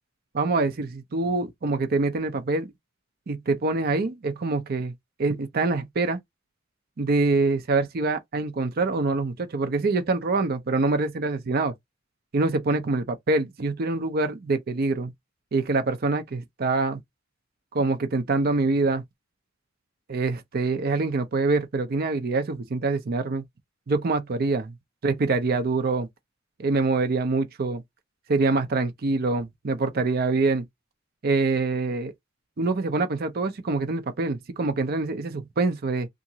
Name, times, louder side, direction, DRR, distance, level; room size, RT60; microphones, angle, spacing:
voice 1, 0.3-2.7 3.3-4.9 5.2-6.2 7.0-11.7 12.3-15.1 15.5-17.0 17.7-19.0 20.1-23.4 23.9-24.6 25.0-26.1 26.6-27.8 28.3-30.6 31.2-32.1 32.6-36.1, right 3 dB, 50° right, 0.5 m, -25 dB
2.8 x 2.5 x 2.6 m
head